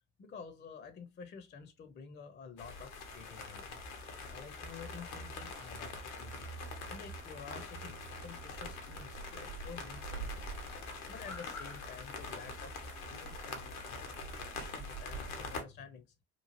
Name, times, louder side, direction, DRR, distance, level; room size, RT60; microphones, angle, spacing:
voice 1, 0.2-3.8 4.3-6.5 6.9-10.5 11.1-16.0, left 6 dB, 25° left, 0.5 m, -50 dB
sound 1, 2.6-15.6, left 3 dB, 85° left, 0.8 m, -44 dB
sound 2, 8.1-15.6, right 5 dB, 70° right, 0.6 m, -49 dB
3.0 x 2.3 x 2.5 m
hypercardioid pair, 55°, 42 cm